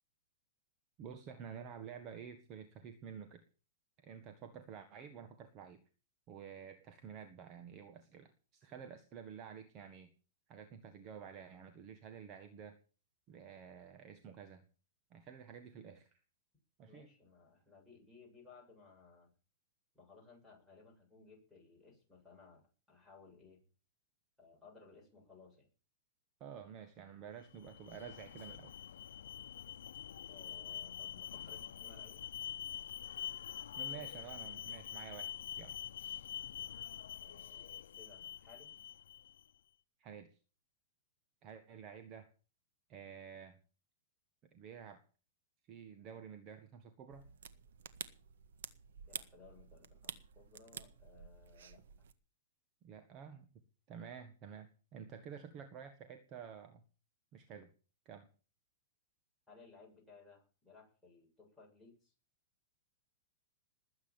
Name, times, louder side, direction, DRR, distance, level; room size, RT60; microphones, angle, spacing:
voice 1, 1.0-3.4 4.0-5.8 6.3-10.1 10.5-12.8 13.3-14.6 15.1-16.2 16.8-17.1 26.4-28.7 33.8-35.8 40.0-40.3 41.4-42.3 42.9-43.6 44.5-45.0 45.7-47.2 52.8-53.5 53.9-56.8 57.3-57.7 58.0-58.3, right 7 dB, 30° right, 8 dB, 1.6 m, -51 dB
voice 2, 16.9-19.3 19.9-23.6 24.4-25.7 30.3-32.3 36.6-38.8 49.0-52.1 59.5-62.1, left 4 dB, ahead, -4 dB, 7.7 m, -60 dB
Alarm, 27.4-39.5, left 9 dB, 85° left, 0.8 m, -46 dB
sound 1, 47.1-52.1, right 8 dB, 80° right, 1.6 m, -50 dB
20.5 x 8.8 x 7.4 m, 0.38 s
supercardioid pair, 165°, 0 cm